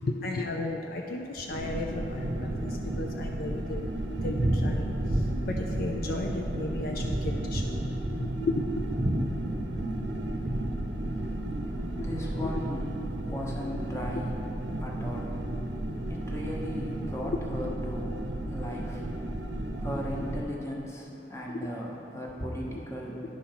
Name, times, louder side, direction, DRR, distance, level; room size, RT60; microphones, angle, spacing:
voice 1, 0.0-2.7 3.0-3.9 4.2-4.4 4.6-4.9 5.4-7.6 8.2-8.6 12.0-12.1 12.4-12.7 17.6-17.8 21.5-21.6, left 2 dB, 55° left, 1 dB, 0.5 m, -34 dB
sound 1, 1.5-20.4, right 1 dB, 85° right, 0.7 m, -34 dB
Thunder, 1.9-17.2, right 1 dB, 35° right, 0.6 m, -35 dB
voice 2, 11.0-11.4 12.0-14.4 14.8-15.4 16.1-19.4 19.7-23.2, equal, 15° left, -2 dB, 1.0 m, -37 dB
10.5 x 4.2 x 5.7 m, 2.8 s
head